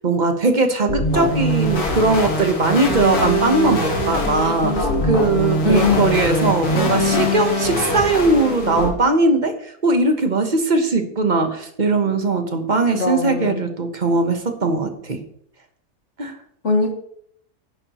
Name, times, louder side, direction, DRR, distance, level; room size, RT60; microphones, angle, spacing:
voice 1, 0.0-15.2 16.2-16.3, right 3 dB, 35° right, 6 dB, 1.1 m, -20 dB
sound 1, 0.9-8.9, left 1 dB, 80° left, 2.3 m, -22 dB
voice 2, 5.6-6.2 12.9-13.5 16.6-16.9, left 3 dB, 50° left, 3 dB, 1.9 m, -19 dB
10.5 x 10.5 x 3.0 m, 0.69 s
omnidirectional pair, 1.6 m